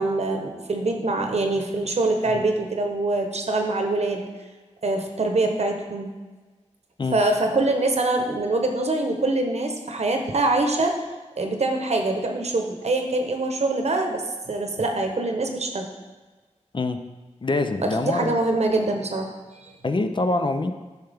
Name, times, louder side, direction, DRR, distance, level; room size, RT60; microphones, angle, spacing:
voice 1, 0.0-4.3 4.8-6.1 7.1-11.0 11.4-15.9 17.8-19.3 19.5-19.7, right 2 dB, 60° right, 3 dB, 1.0 m, -24 dB
voice 2, 17.4-18.4 19.8-20.7, left 2 dB, 40° left, 7 dB, 0.5 m, -25 dB
9.1 x 5.8 x 3.5 m, 1.3 s
wide cardioid pair, 80°, 12 cm